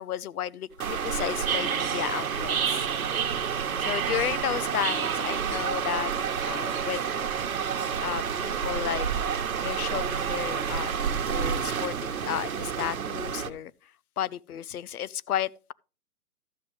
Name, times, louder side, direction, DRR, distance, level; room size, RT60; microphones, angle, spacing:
voice 1, 0.0-2.8 3.8-6.1 6.5-7.3 8.0-9.1 9.6-10.9 11.3-13.7 14.2-15.7, left 11 dB, 70° left, 0.6 m, -33 dB
sound 1, 0.8-13.5, right 7 dB, 60° right, 1.2 m, -29 dB
13.0 x 7.9 x 3.1 m
hypercardioid pair, 175°, 47 cm